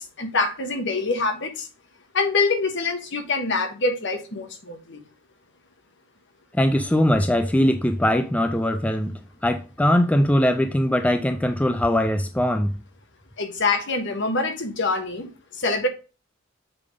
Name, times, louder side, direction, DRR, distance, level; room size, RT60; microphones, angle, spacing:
voice 1, 0.0-1.7 2.1-5.0 13.4-15.3 15.5-15.9, left 3 dB, 60° left, 1.3 m, -25 dB
voice 2, 6.5-9.1 9.4-12.7, left 1 dB, 5° left, 0.4 m, -21 dB
6.7 x 3.5 x 4.9 m
head